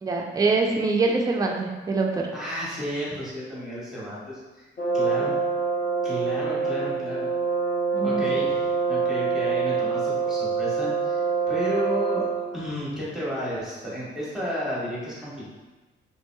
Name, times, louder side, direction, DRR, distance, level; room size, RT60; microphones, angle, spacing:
voice 1, 0.0-2.3 5.2-5.3 7.9-8.3, right 3 dB, 20° right, 1 dB, 0.4 m, -24 dB
voice 2, 2.3-4.7 4.9-5.3 6.0-7.3 8.0-12.3 12.5-15.5, equal, 5° right, -7 dB, 1.2 m, -32 dB
Brass instrument, 4.8-12.6, right 5 dB, 45° left, 0.7 m, -25 dB
2.9 x 2.7 x 2.2 m, 1.2 s
cardioid pair, 90°, 20 cm